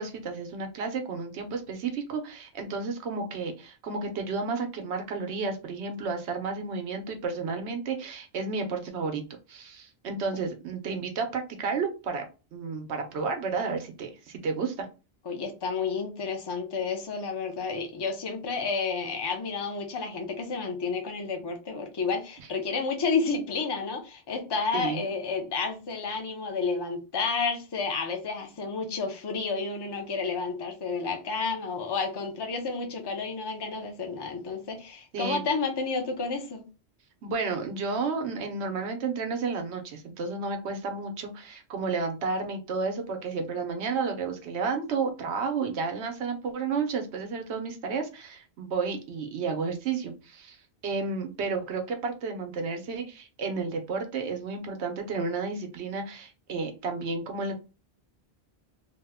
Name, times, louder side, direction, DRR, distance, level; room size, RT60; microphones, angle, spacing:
voice 1, 0.0-9.2 9.5-12.3 12.5-14.9 24.7-25.1 35.1-35.4 37.2-50.6 50.8-57.6, right 4 dB, 85° right, 5 dB, 1.0 m, -32 dB
voice 2, 15.3-36.6, left 4 dB, 30° left, 4 dB, 0.5 m, -31 dB
2.9 x 2.1 x 3.4 m, 0.31 s
omnidirectional pair, 1.1 m